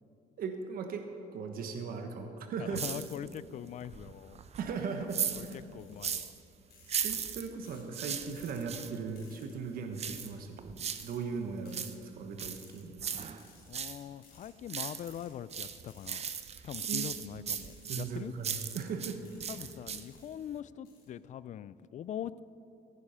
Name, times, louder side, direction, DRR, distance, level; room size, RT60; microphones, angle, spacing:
voice 1, 0.4-1.1 1.3-2.8 4.6-5.6 7.0-13.0 16.9-17.1 17.8-19.2, right 5 dB, 60° right, 4 dB, 1.1 m, -38 dB
voice 2, 2.6-4.4 5.3-6.3 13.7-16.2 16.6-18.3 19.5-22.4, left 10 dB, 45° left, 17 dB, 0.4 m, -42 dB
sound 1, 2.8-3.5 3.8-6.4 6.8-9.0 10.0-11.2 11.5-14.0 14.4-15.2 15.5-19.2 19.4-20.2 20.5-20.6, right 7 dB, 40° right, 0.8 m, -37 dB
sound 2, 5.8-6.1 6.7-7.1 7.6-7.9 8.3-8.6 9.1-9.5 10.1-10.3 10.8-11.2 11.6-12.0 12.5-12.8 13.4-13.7 14.2-14.5 15.0-15.3 15.8-16.2 16.7-17.0 17.6-17.9 18.4-18.7 19.2-19.6 20.1-20.3 20.8-21.1, left 5 dB, 65° left, 3.4 m, -60 dB
15.0 x 9.9 x 5.7 m, 2.7 s
cardioid pair, 110°, 17 cm